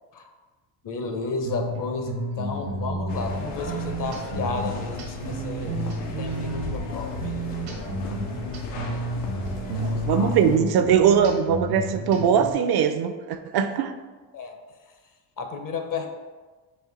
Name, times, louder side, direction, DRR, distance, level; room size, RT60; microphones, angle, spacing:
voice 1, 0.8-5.8 6.2-7.3 9.7-10.4 14.3-14.6 15.4-16.1, left 4 dB, 45° left, 5 dB, 0.6 m, -32 dB
sound 1, 1.4-12.5, right 1 dB, 90° right, 1.3 m, -31 dB
sound 2, 3.1-10.6, left 3 dB, 90° left, 0.7 m, -36 dB
voice 2, 9.8-13.9, right 7 dB, 55° right, 9 dB, 0.5 m, -21 dB
4.3 x 2.6 x 3.8 m, 1.3 s
supercardioid pair, 70°, 48 cm